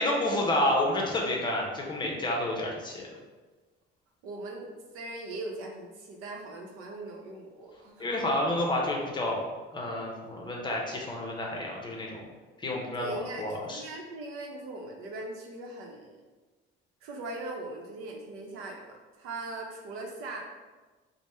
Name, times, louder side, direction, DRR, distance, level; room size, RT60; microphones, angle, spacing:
voice 1, 0.0-3.1 8.0-9.4 9.7-12.2 12.6-13.8, left 1 dB, 20° left, -1 dB, 0.6 m, -29 dB
voice 2, 4.2-4.7 4.9-8.1 12.9-16.2 17.0-20.4, right 2 dB, 85° right, 1 dB, 0.7 m, -40 dB
3.4 x 2.1 x 4.2 m, 1.3 s
cardioid pair, 145°, 21 cm